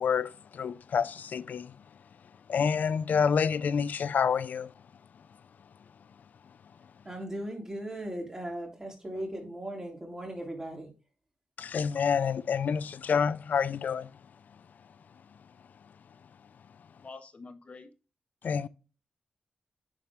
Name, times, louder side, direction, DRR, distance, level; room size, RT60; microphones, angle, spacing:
voice 1, 0.0-1.7 2.5-4.7 11.6-14.1 18.4-18.7, left 6 dB, 75° left, 0.4 m, -28 dB
voice 2, 7.0-10.9, right 1 dB, 20° right, 3.2 m, -38 dB
voice 3, 17.0-17.9, left 4 dB, 50° left, 1.2 m, -46 dB
9.9 x 4.2 x 3.5 m
cardioid pair, 60°, 3 cm